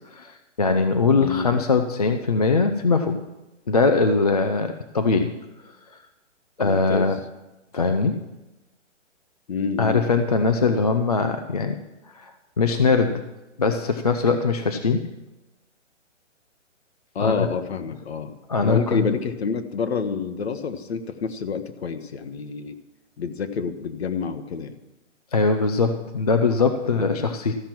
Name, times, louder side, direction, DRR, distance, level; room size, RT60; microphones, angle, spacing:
voice 1, 0.1-3.2 3.7-5.3 6.6-7.2 7.7-8.2 9.8-11.8 12.1-13.2 13.6-15.1 17.2-17.5 18.5-19.2 25.3-27.5, left 4 dB, 35° left, 6 dB, 0.4 m, -21 dB
voice 2, 1.1-1.6 6.6-7.0 9.5-10.0 17.1-18.3 18.6-22.8 23.2-24.7 26.9-27.3, left 5 dB, 55° left, 8 dB, 1.1 m, -28 dB
13.5 x 5.9 x 7.4 m, 1.0 s
hypercardioid pair, 165°, 37 cm